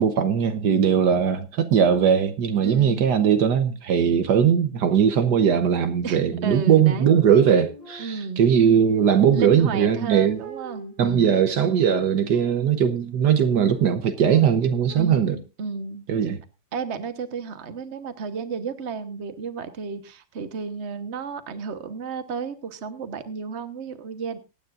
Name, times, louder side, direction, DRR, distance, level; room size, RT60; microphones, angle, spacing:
voice 1, 0.0-10.4 11.0-15.4 16.1-16.4, right 8 dB, 70° right, 1.5 m, -20 dB
voice 2, 2.6-3.1 6.0-7.1 8.0-8.5 9.3-11.3 14.9-16.1 16.7-24.4, right 5 dB, 40° right, 1.3 m, -32 dB
sound 1, 6.9-8.4 8.9-13.0 13.4-15.0, right 1 dB, 90° right, 8.6 m, -46 dB
24.0 x 9.3 x 2.5 m
omnidirectional pair, 2.0 m